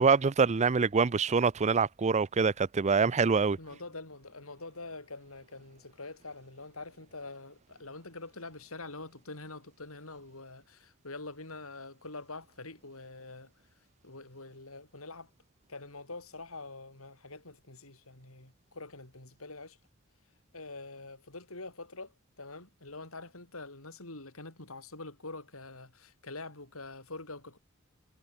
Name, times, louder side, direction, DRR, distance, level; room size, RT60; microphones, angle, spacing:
voice 1, 0.0-3.6, right 5 dB, 35° right, 0.5 m, -25 dB
voice 2, 3.6-13.5 14.0-15.3 15.7-19.8 20.5-27.6, left 3 dB, 75° left, 5.7 m, -45 dB
head